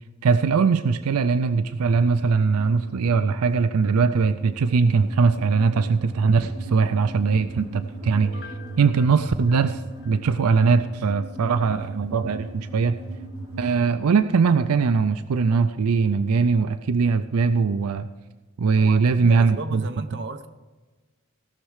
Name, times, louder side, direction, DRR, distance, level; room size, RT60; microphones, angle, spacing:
voice 1, 0.2-13.0 13.6-18.1 18.6-19.8, right 5 dB, 85° right, 11 dB, 0.4 m, -21 dB
sound 1, 1.7-13.6, right 2 dB, 20° right, 4.4 m, -38 dB
Piano, 8.0-10.7 11.1-11.2, left 3 dB, 50° left, 0.8 m, -47 dB
voice 2, 18.8-20.5, right 3 dB, 55° right, 7 dB, 0.8 m, -34 dB
17.0 x 6.5 x 4.9 m, 1.3 s
head